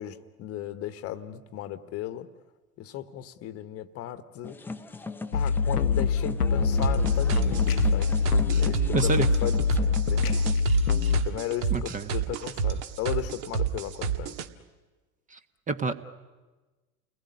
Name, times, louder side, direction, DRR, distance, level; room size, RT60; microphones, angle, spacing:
voice 1, 0.0-2.3 2.8-4.6 5.3-8.2 8.6-10.4 11.2-14.3, left 12 dB, 30° left, 13 dB, 1.3 m, -36 dB
sound 1, 4.4-10.5, left 3 dB, 5° left, 0.8 m, -38 dB
sound 2, 5.3-11.2, left 6 dB, 80° left, 0.8 m, -24 dB
sound 3, 6.8-14.5, right 7 dB, 50° right, 1.8 m, -29 dB
voice 2, 8.9-9.3 11.7-12.0 15.3-15.4 15.7-15.9, right 4 dB, 15° right, 12 dB, 1.2 m, -27 dB
29.5 x 20.0 x 10.0 m, 1.2 s
figure-of-eight pair, 85°, 45 cm